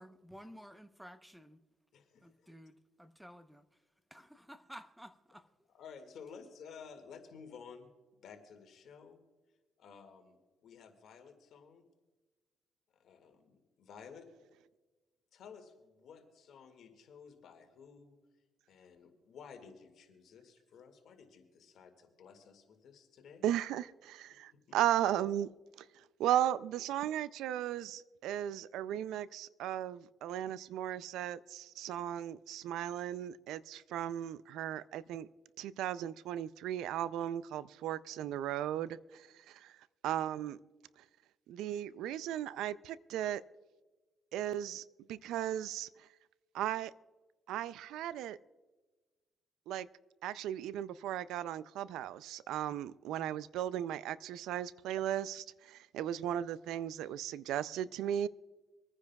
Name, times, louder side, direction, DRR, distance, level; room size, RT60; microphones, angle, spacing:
voice 1, 0.0-1.6 2.2-3.6 4.1-5.5, equal, ahead, 0.8 m, -53 dB
voice 2, 1.9-2.5 5.7-7.9 8.2-9.2 9.8-10.4 10.6-11.8 13.0-14.3 15.3-18.2 18.7-23.5 24.5-24.8, left 6 dB, 70° left, 2.0 m, -54 dB
voice 3, 23.4-25.5 25.8-35.3 35.6-39.8 40.0-40.6 41.5-43.4 44.3-46.1 46.5-46.9 47.5-48.4 49.7-49.9 50.2-58.3, right 11 dB, 90° right, 0.4 m, -36 dB
26.5 x 9.8 x 2.3 m
cardioid pair, 90°, 0 cm